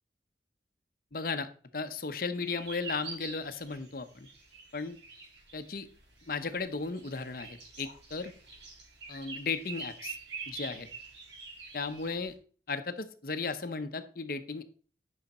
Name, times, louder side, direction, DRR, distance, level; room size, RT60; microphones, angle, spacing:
voice 1, 1.1-1.5 1.7-4.3 4.7-5.0 5.5-5.9 6.3-8.3 9.1-10.2 10.5-10.9 11.7-12.3 12.7-14.6, left 4 dB, 50° left, 10 dB, 0.8 m, -35 dB
sound 1, 2.4-12.3, right 4 dB, 80° right, 3.7 m, -46 dB
10.5 x 6.4 x 4.2 m, 0.42 s
head